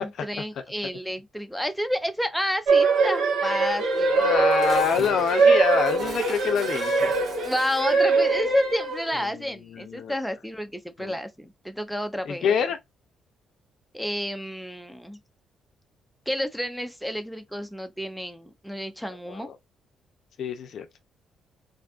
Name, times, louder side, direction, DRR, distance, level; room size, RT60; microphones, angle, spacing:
voice 1, 0.0-4.2 7.4-12.5 13.9-15.2 16.3-19.5, equal, ahead, 0.4 m, -30 dB
sound 1, 2.7-9.2, right 4 dB, 75° right, 0.8 m, -22 dB
voice 2, 4.1-7.1 9.3-9.4 9.7-10.1 11.0-11.2 12.3-12.8 19.3-19.6 20.4-20.9, left 7 dB, 65° left, 0.4 m, -26 dB
Dishes pots and pans, 4.2-8.0, right 2 dB, 45° right, 1.2 m, -42 dB
2.5 x 2.3 x 2.4 m
cardioid pair, 90°, 0 cm